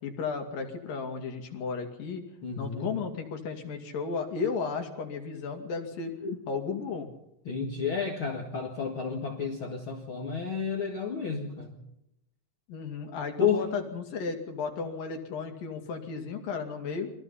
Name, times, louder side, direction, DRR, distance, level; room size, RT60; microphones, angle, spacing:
voice 1, 0.0-2.2 2.6-6.1 6.5-7.1 12.7-17.1, left 5 dB, 75° left, 4 dB, 4.0 m, -34 dB
voice 2, 2.4-3.0 6.2-6.4 7.5-11.8 13.4-13.7, left 6 dB, 40° left, 1 dB, 2.3 m, -31 dB
29.5 x 23.0 x 4.2 m, 0.84 s
omnidirectional pair, 4.1 m